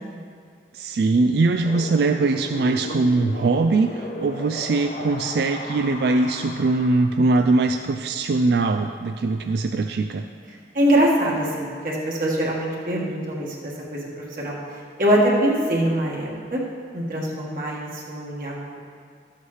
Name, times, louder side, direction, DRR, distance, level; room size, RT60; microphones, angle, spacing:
voice 1, 0.7-10.2, right 3 dB, 65° right, 6 dB, 0.3 m, -21 dB
Wind, 1.6-7.1, left 2 dB, 40° left, 0.5 m, -36 dB
voice 2, 10.7-14.6 15.0-16.6 16.9-18.8, right 1 dB, 50° right, -3 dB, 1.6 m, -23 dB
12.5 x 8.1 x 3.2 m, 2.1 s
head